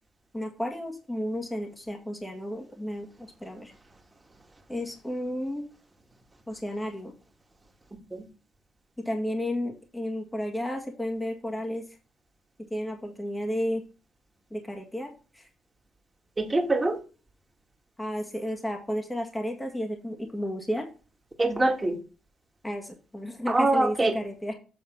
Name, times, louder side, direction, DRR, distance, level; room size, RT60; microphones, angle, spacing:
voice 1, 0.3-3.7 4.7-5.6 6.5-7.1 9.0-11.9 12.6-13.8 14.5-15.5 18.0-20.9 22.6-24.5, equal, 10° left, 2 dB, 1.7 m, -32 dB
voice 2, 16.4-17.0 21.4-22.0 23.5-24.2, right 2 dB, 20° right, 2 dB, 1.9 m, -24 dB
8.1 x 3.8 x 5.6 m, 0.34 s
cardioid pair, 90°, 0 cm